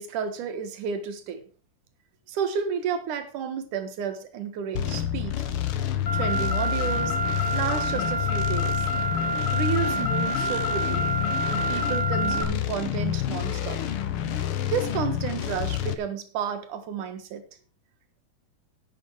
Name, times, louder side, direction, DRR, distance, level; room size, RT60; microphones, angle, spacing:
voice 1, 0.0-1.4 2.3-5.3 6.1-7.2 7.5-8.8 9.5-11.1 11.5-13.8 14.7-17.4, right 7 dB, 65° right, 9 dB, 3.0 m, -31 dB
sound 1, 4.7-15.9, left 11 dB, 85° left, 1.2 m, -28 dB
Car, 6.1-12.4, right 2 dB, 65° left, 0.8 m, -28 dB
11.5 x 9.8 x 4.8 m, 0.36 s
omnidirectional pair, 4.0 m